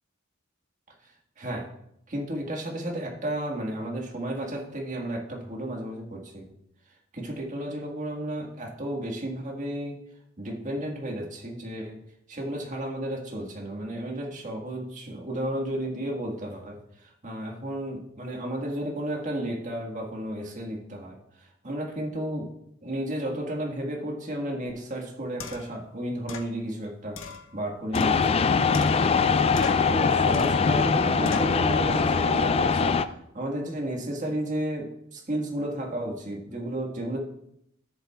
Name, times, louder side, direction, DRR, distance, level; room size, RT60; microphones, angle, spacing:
voice 1, 1.0-1.7 2.1-6.4 7.1-10.0 10.4-12.0 12.3-22.5 22.8-27.2 27.5-29.3 29.9-33.0 33.3-37.2, right 1 dB, 40° right, 0 dB, 1.6 m, -33 dB
sound 1, 24.7-24.8 25.4-25.8 26.3-26.5 27.2-28.4 28.7-29.3 29.6-30.0 30.3-30.7 31.2-31.6, left 5 dB, 70° left, 0.8 m, -39 dB
sound 2, 27.9-33.1, left 5 dB, 30° left, 0.3 m, -22 dB
13.0 x 7.3 x 2.3 m, 0.75 s
head